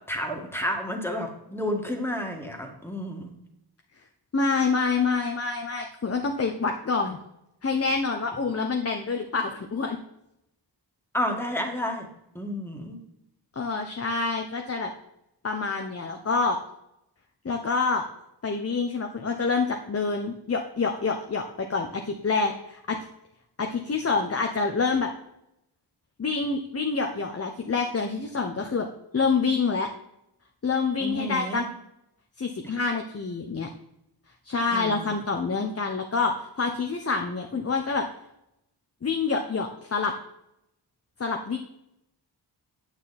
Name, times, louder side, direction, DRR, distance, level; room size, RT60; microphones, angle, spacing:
voice 1, 0.1-3.3 11.1-12.1 12.4-13.0 31.0-31.7 34.7-35.1, equal, 5° left, 2 dB, 1.9 m, -31 dB
voice 2, 4.3-7.2 7.6-10.0 13.6-14.9 15.4-16.6 17.4-18.0 18.4-23.0 23.6-25.1 26.2-28.9 29.1-29.9 30.6-31.6 32.4-33.7 34.4-38.1 39.0-40.1 41.2-41.6, left 4 dB, 35° left, 3 dB, 0.9 m, -27 dB
9.0 x 9.0 x 4.2 m, 0.82 s
wide cardioid pair, 110°, 42 cm